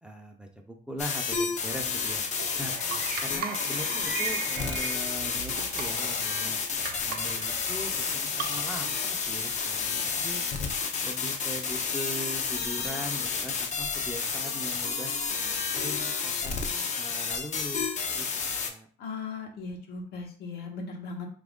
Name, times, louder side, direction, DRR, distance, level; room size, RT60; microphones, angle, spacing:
voice 1, 0.0-2.2 2.6-2.7 3.2-6.6 7.0-10.4 11.0-15.1 15.7-16.6 17.0-18.3 18.5-18.9, equal, 5° right, 2 dB, 0.5 m, -40 dB
sound 1, 1.0-18.7, left 5 dB, 45° left, 0.5 m, -31 dB
sound 2, 1.7-9.0, right 5 dB, 60° right, 0.6 m, -38 dB
voice 2, 19.0-21.3, left 4 dB, 70° left, 2 dB, 0.9 m, -38 dB
2.9 x 2.5 x 3.5 m, 0.42 s
cardioid pair, 110°, 17 cm